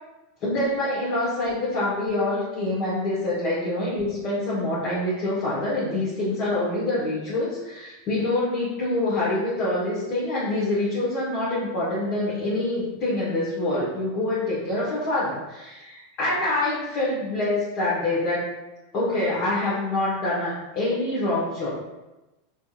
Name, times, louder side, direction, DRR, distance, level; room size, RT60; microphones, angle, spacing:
voice 1, 0.4-18.5 18.9-21.7, left 2 dB, 50° left, -9 dB, 1.4 m, -26 dB
4.2 x 2.9 x 2.5 m, 1.0 s
hypercardioid pair, 90°, 0 cm